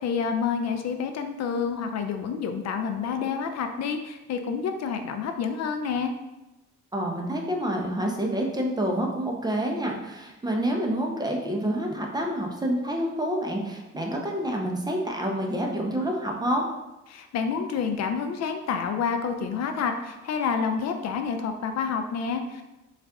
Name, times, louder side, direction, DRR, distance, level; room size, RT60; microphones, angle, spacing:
voice 1, 0.0-6.1 17.1-22.7, left 6 dB, 60° left, 7 dB, 0.4 m, -28 dB
voice 2, 6.9-16.6, right 1 dB, 15° right, 0 dB, 0.6 m, -28 dB
4.1 x 2.4 x 3.4 m, 1.0 s
cardioid pair, 90°, 30 cm